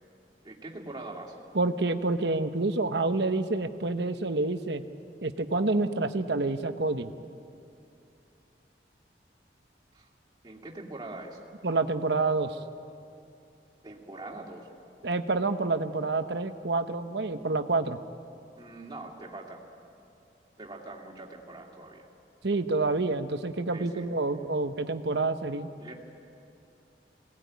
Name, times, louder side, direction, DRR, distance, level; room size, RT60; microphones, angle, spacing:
voice 1, 0.4-1.4 9.9-10.1 10.4-11.4 13.8-14.7 18.5-19.6 20.6-22.1 23.7-24.1 25.8-26.0, right 2 dB, 25° right, -2 dB, 2.5 m, -43 dB
voice 2, 1.5-4.8 5.2-7.1 11.6-12.6 15.0-18.0 22.4-25.7, right 3 dB, 75° right, 8 dB, 1.0 m, -28 dB
22.5 x 18.0 x 9.4 m, 2.6 s
head